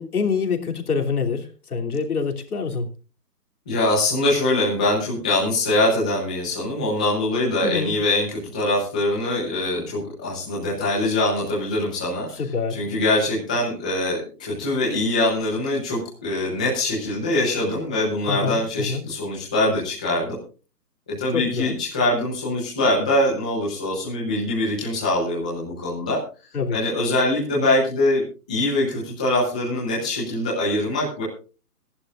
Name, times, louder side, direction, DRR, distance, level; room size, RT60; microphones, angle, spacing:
voice 1, 0.0-2.9 7.6-7.9 12.4-12.8 18.3-18.6 18.9-19.0 21.3-21.7 26.5-26.8, left 5 dB, 65° left, 3 dB, 3.1 m, -25 dB
voice 2, 3.7-12.3 12.7-20.3 21.2-26.2 26.7-28.2 28.5-31.2, left 1 dB, 5° left, -6 dB, 0.8 m, -23 dB
25.5 x 11.0 x 2.5 m, 0.34 s
hypercardioid pair, 165°, 48 cm